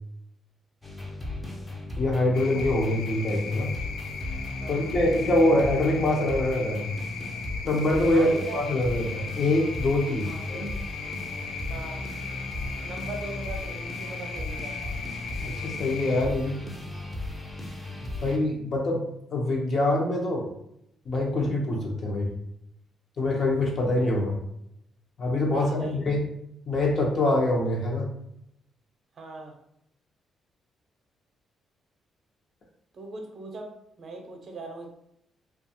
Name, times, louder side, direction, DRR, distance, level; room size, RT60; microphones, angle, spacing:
sound 1, 0.8-18.4, left 1 dB, 15° left, 0.5 m, -36 dB
voice 1, 2.0-3.7 4.7-6.9 7.6-10.7 15.4-16.6 18.2-19.0 19.3-20.5 21.1-22.3 23.2-24.4 25.2-26.2 26.7-28.1, left 1 dB, 50° left, -1 dB, 0.7 m, -24 dB
sound 2, 2.3-16.3, left 5 dB, 80° left, 0.3 m, -38 dB
voice 2, 4.6-4.9 8.1-8.6 10.2-10.5 11.7-12.1 12.8-15.0 25.5-26.0 29.2-29.6 32.9-34.9, right 2 dB, 50° right, 2 dB, 0.6 m, -40 dB
2.4 x 2.3 x 2.7 m, 0.76 s
cardioid pair, 90°, 0 cm